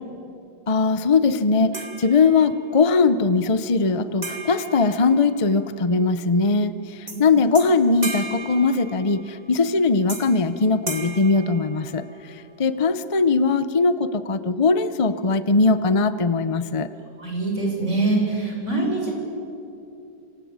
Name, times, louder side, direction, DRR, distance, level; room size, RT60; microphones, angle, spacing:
voice 1, 0.7-16.9, left 4 dB, 45° left, 12 dB, 0.4 m, -20 dB
sound 1, 1.7-2.7 4.2-5.8 7.1-7.2 7.5-9.4 10.1-10.5 10.9-12.3, right 2 dB, 20° right, 2.7 m, -35 dB
voice 2, 17.2-19.1, right 2 dB, 40° right, 0 dB, 6.9 m, -24 dB
27.5 x 24.5 x 8.9 m, 2.6 s
omnidirectional pair, 2.0 m